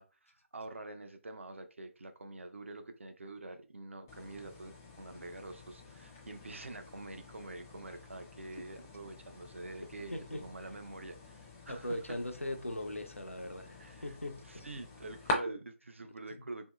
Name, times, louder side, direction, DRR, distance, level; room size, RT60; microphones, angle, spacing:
voice 1, 0.0-12.2 13.8-14.2 14.5-16.7, right 2 dB, 65° right, 0.4 m, -46 dB
sound 1, 4.1-15.3, left 2 dB, 15° left, 0.4 m, -45 dB
voice 2, 10.1-10.5 11.7-14.7 16.3-16.4, left 1 dB, 90° left, 0.5 m, -40 dB
2.8 x 2.6 x 2.3 m
figure-of-eight pair, 150°, 7 cm